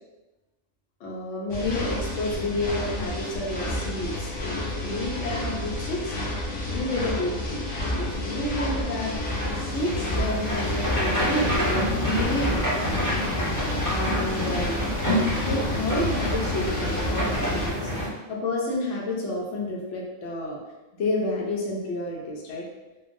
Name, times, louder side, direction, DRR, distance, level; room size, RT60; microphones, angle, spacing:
voice 1, 1.0-6.1 6.7-7.6 7.9-9.1 9.5-12.9 13.9-14.8 15.4-20.6 21.0-22.7, left 1 dB, 65° left, -2 dB, 0.9 m, -30 dB
sound 1, 1.5-17.7, left 1 dB, 35° left, 0.5 m, -30 dB
sound 2, 8.8-18.1, equal, 15° left, 1.1 m, -28 dB
3.1 x 2.0 x 2.5 m, 1.1 s
omnidirectional pair, 1.4 m